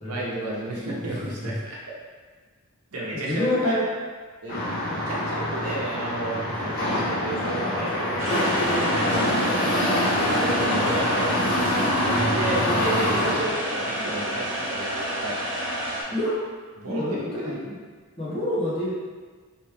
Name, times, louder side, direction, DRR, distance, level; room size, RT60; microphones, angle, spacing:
voice 1, 0.0-1.8 2.9-3.6 4.4-4.6 5.1-9.3 9.7-10.1 10.6-11.5 12.0-15.4 16.8-17.6, right 1 dB, 85° right, -4 dB, 0.9 m, -32 dB
voice 2, 3.1-3.8 6.9-7.0 12.5-12.9 16.1-16.3 16.9-17.8 18.2-18.9, left 1 dB, 25° left, -8 dB, 1.0 m, -27 dB
sound 1, 4.5-13.4, left 1 dB, 45° left, 1.3 m, -25 dB
sound 2, 8.2-16.0, equal, 60° right, 0.9 m, -29 dB
3.2 x 3.0 x 3.2 m, 1.5 s
head